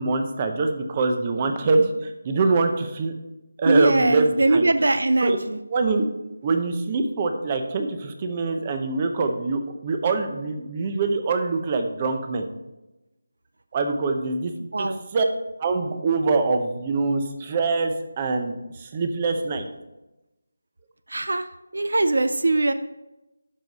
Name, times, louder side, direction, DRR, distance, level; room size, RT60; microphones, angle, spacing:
voice 1, 0.0-3.1 3.6-4.7 5.2-5.4 5.7-6.1 6.4-12.4 13.7-14.5 14.8-15.3 15.6-19.7, right 3 dB, 25° right, 6 dB, 0.7 m, -24 dB
voice 2, 3.7-5.6 14.7-15.0 21.1-21.5 21.7-22.7, right 2 dB, 75° right, 11 dB, 0.4 m, -21 dB
11.5 x 4.7 x 4.1 m, 0.98 s
figure-of-eight pair, 170°, 0 cm